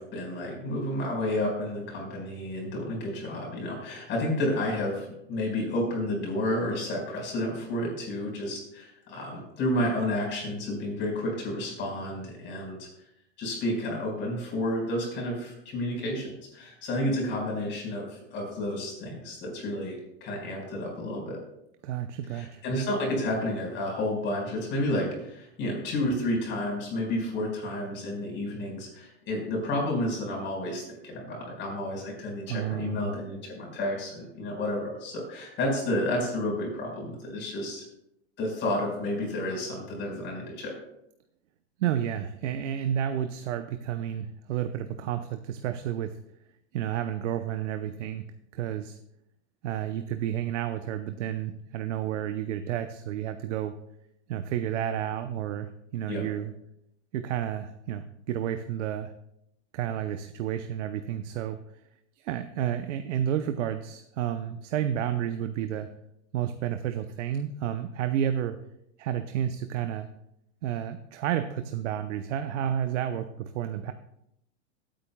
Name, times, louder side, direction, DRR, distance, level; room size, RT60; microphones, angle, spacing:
voice 1, 0.0-12.9 13.4-21.4 22.3-37.9 38.4-40.7 56.1-56.2, left 1 dB, 30° left, -1 dB, 4.9 m, -31 dB
voice 2, 21.8-22.6 32.5-33.1 41.8-46.1 46.7-48.3 48.5-49.0 49.6-53.8 54.3-56.5 57.1-59.1 59.7-61.6 62.2-65.9 66.3-68.6 69.0-70.1 70.6-73.9, right 10 dB, 85° right, 8 dB, 0.8 m, -31 dB
22.0 x 8.9 x 2.3 m, 0.80 s
supercardioid pair, 150°, 36 cm